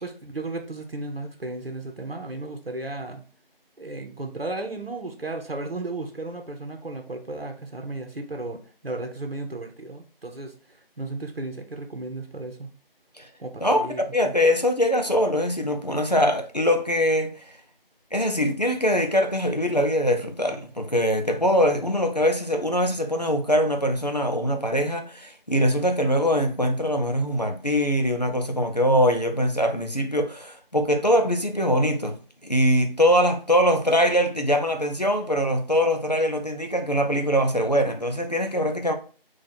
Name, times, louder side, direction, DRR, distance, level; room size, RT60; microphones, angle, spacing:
voice 1, 0.0-3.2 3.8-12.7 13.4-14.3, right 2 dB, 80° right, 0.9 m, -34 dB
voice 2, 14.1-17.5 18.1-32.2 32.4-38.9, equal, 45° left, 0.5 m, -22 dB
4.3 x 2.4 x 4.2 m
figure-of-eight pair, 180°, 29 cm